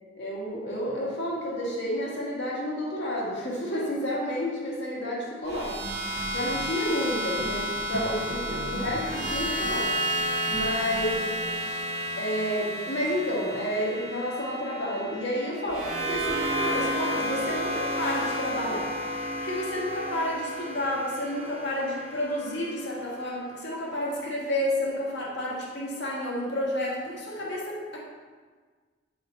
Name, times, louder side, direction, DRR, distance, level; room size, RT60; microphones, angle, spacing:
voice 1, 0.1-5.8 6.3-11.4 12.2-28.0, equal, 65° left, -4 dB, 1.8 m, -30 dB
sound 1, 5.5-23.6, equal, 35° right, 1.5 m, -32 dB
sound 2, 5.8-11.2, right 1 dB, 60° right, 1.0 m, -39 dB
7.7 x 5.3 x 3.8 m, 1.5 s
head